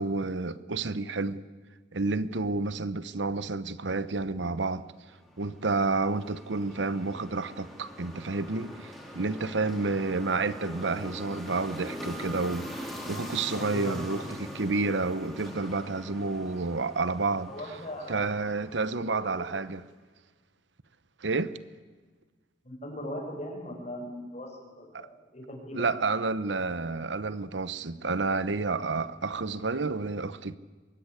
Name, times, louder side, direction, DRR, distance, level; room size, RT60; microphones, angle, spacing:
voice 1, 0.0-1.4 1.9-4.8 5.4-17.5 18.1-19.8 21.2-21.5 24.9-25.1 25.7-30.6, right 3 dB, 80° right, 0.9 m, -30 dB
sound 1, 5.1-19.4, equal, ahead, 4.1 m, -42 dB
voice 2, 13.5-14.1 17.5-18.4 18.7-18.9 19.1-19.4 22.6-25.9, equal, 35° left, 6.7 m, -39 dB
23.5 x 20.5 x 9.8 m
head